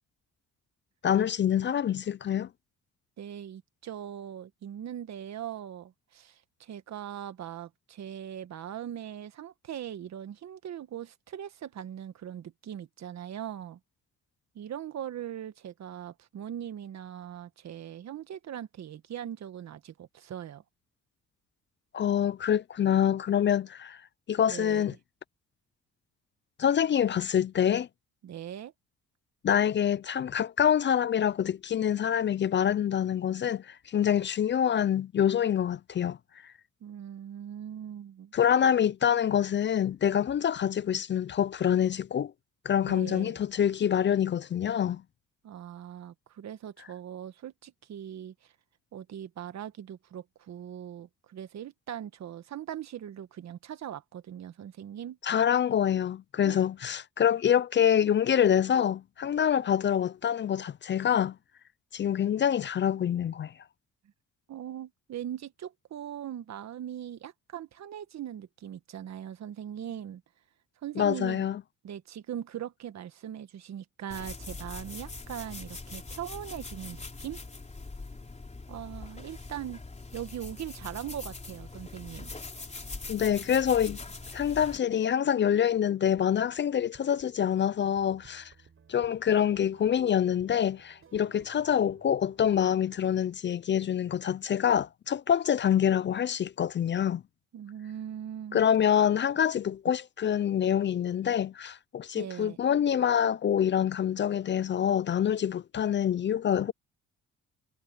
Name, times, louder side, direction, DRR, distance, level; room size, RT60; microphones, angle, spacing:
voice 1, 1.0-2.5 21.9-24.0 24.3-24.9 26.6-27.9 29.4-36.2 36.4-36.5 38.3-42.3 42.6-45.0 55.2-61.4 61.9-63.5 71.0-71.6 83.1-84.0 84.3-88.5 88.9-97.2 98.5-106.7, left 9 dB, 40° left, 0.4 m, -26 dB
voice 2, 3.2-13.8 14.5-20.6 24.5-24.9 28.2-28.7 36.8-38.3 42.9-43.4 45.4-48.5 48.9-55.2 56.4-56.6 64.5-70.2 70.8-71.4 71.8-77.4 78.7-79.8 80.1-82.3 97.5-98.6 102.2-102.6, right 10 dB, 60° right, 1.5 m, -40 dB
sound 1, 74.1-84.8, left 3 dB, 20° left, 3.7 m, -42 dB
sound 2, 84.9-93.2, right 6 dB, 45° right, 5.6 m, -59 dB
cardioid pair, 90°, 30 cm